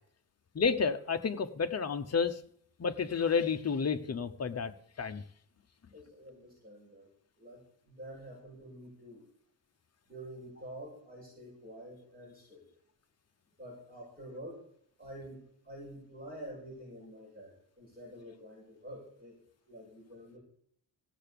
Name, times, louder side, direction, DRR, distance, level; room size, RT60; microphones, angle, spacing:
voice 1, 0.5-2.4 2.8-5.2, left 5 dB, 35° left, 8 dB, 0.9 m, -31 dB
voice 2, 5.9-7.1 7.4-9.2 10.1-12.7 13.6-14.7 15.0-19.4 19.6-20.4, equal, 20° right, -6 dB, 6.7 m, -48 dB
15.5 x 6.9 x 6.9 m, 0.66 s
wide cardioid pair, 125°, 42 cm